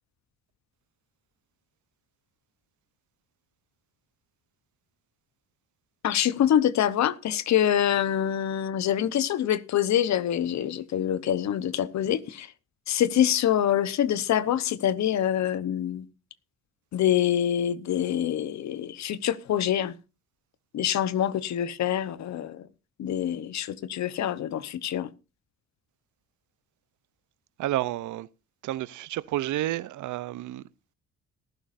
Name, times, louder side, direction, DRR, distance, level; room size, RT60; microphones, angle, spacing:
voice 1, 6.0-12.5 12.9-16.1 16.9-20.0 20.7-22.7 23.0-25.1, left 10 dB, 65° left, 1.0 m, -25 dB
voice 2, 27.6-28.3 28.6-30.6, right 15 dB, 75° right, 0.6 m, -30 dB
18.5 x 11.5 x 2.6 m
cardioid pair, 90°, 30 cm